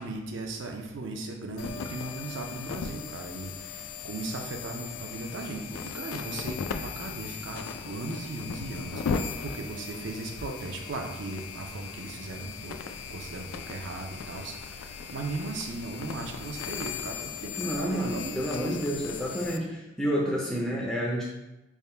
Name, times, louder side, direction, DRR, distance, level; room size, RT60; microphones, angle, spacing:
voice 1, 0.0-12.8 13.1-18.8, right 2 dB, 55° right, 3 dB, 0.5 m, -37 dB
sound 1, 1.6-19.6, left 6 dB, 85° left, 0.3 m, -38 dB
voice 2, 17.6-21.3, equal, ahead, -4 dB, 0.4 m, -29 dB
3.5 x 2.1 x 4.2 m, 0.95 s
head